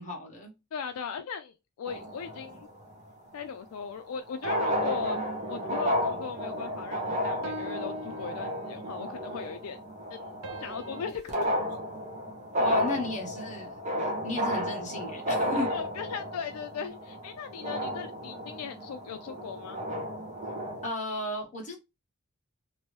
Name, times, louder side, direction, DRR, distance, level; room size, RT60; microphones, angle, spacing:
voice 1, 0.0-0.5 12.6-15.7 20.8-21.8, left 1 dB, 35° left, 1.2 m, -35 dB
voice 2, 0.7-2.7 3.3-5.2 5.5-9.8 10.1-11.8 15.4-19.8, left 6 dB, 80° left, 0.4 m, -38 dB
sound 1, 1.9-2.9 4.1-4.2 4.4-20.9, equal, 35° right, 0.7 m, -32 dB
sound 2, 4.4-6.0 6.4-6.8 7.4-9.1 10.4-12.8, right 2 dB, 85° right, 0.6 m, -44 dB
2.9 x 2.6 x 3.1 m
head